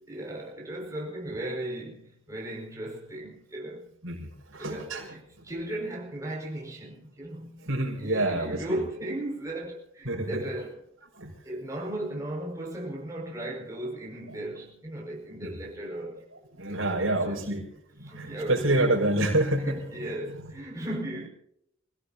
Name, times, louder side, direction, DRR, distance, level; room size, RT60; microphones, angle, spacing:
voice 1, 0.0-3.9 4.6-7.7 7.9-10.8 11.4-16.2 16.7-17.4 18.0-19.1 19.7-21.3, right 1 dB, 15° right, 5.3 m, -36 dB
voice 2, 4.0-5.1 7.6-8.8 10.0-10.4 11.2-11.3 15.4-15.6 16.5-17.6 18.0-19.8 20.3-20.5, right 1 dB, 90° right, 5.7 m, -27 dB
27.5 x 16.5 x 2.8 m
head